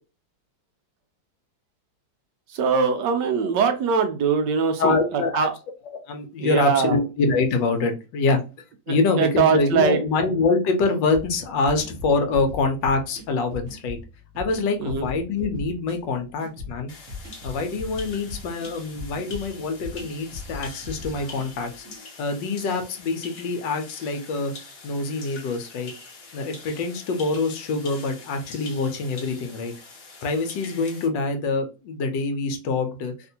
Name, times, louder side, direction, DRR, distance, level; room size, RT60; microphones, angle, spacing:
voice 1, 2.5-5.5 6.4-7.0 8.9-10.0 14.8-15.1, right 6 dB, 70° right, 6 dB, 1.1 m, -22 dB
voice 2, 4.8-5.5 5.8-8.4 8.9-14.0 14.4-16.9 17.4-24.5 24.8-25.9 26.3-29.7 30.2-33.1, left 3 dB, 75° left, 5 dB, 1.3 m, -25 dB
sound 1, 11.1-22.0, left 3 dB, 50° right, 1.0 m, -39 dB
sound 2, 16.9-31.1, left 4 dB, 55° left, 1.1 m, -44 dB
3.5 x 2.5 x 2.7 m, 0.31 s
omnidirectional pair, 2.1 m